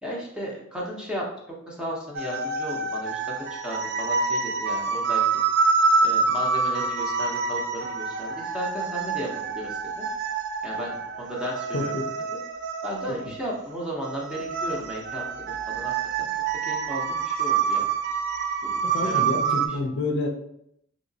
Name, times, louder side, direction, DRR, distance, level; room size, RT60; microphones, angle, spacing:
voice 1, 0.0-1.2 1.7-5.2 6.0-10.1 10.6-11.9 12.8-15.5 15.7-15.9 16.2-16.3 16.6-17.9 18.6-19.3 19.7-19.8, equal, 5° right, -4 dB, 0.7 m, -35 dB
sound 1, 2.1-19.7, right 5 dB, 55° right, 0.3 m, -27 dB
voice 2, 11.7-12.1 18.8-20.3, left 2 dB, 55° left, 3 dB, 0.5 m, -28 dB
3.0 x 2.9 x 2.7 m, 0.73 s
head